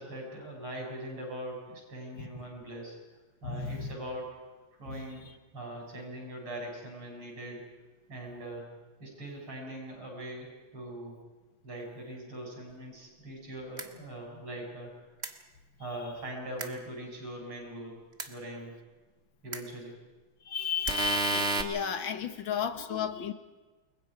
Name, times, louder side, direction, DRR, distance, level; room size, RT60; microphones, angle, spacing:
voice 1, 0.0-3.0 3.4-4.4 4.8-5.3 5.5-7.6 8.1-8.7 9.0-11.2 11.6-14.9 15.8-18.0 18.3-18.7 19.4-20.0 22.3-22.8, right 1 dB, 70° right, 0 dB, 7.7 m, -41 dB
voice 2, 3.4-3.9 4.9-5.3 20.4-23.3, left 7 dB, 65° left, 9 dB, 1.9 m, -34 dB
sound 1, 13.8-13.9 15.2-15.3 16.6-16.7 18.2-18.3 19.5-19.6 20.9-21.6, right 3 dB, 30° right, 1.7 m, -29 dB
29.5 x 22.5 x 4.9 m, 1.2 s
omnidirectional pair, 2.4 m